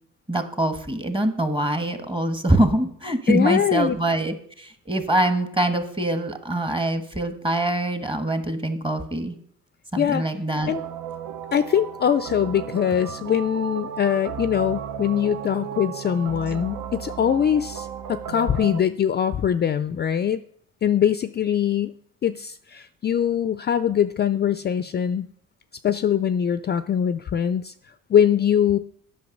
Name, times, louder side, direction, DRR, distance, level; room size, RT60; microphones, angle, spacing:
voice 1, 0.3-9.4 9.9-10.7, right 1 dB, 15° right, 8 dB, 1.2 m, -24 dB
voice 2, 3.3-4.0 10.0-10.3 10.7-10.8 11.5-20.4 20.8-22.0 22.2-25.3 25.8-27.7 28.1-28.8, left 9 dB, 35° left, 12 dB, 0.4 m, -22 dB
sound 1, 10.6-18.8, right 8 dB, 75° right, 0.8 m, -34 dB
8.6 x 5.8 x 6.4 m, 0.64 s
cardioid pair, 90°, 30 cm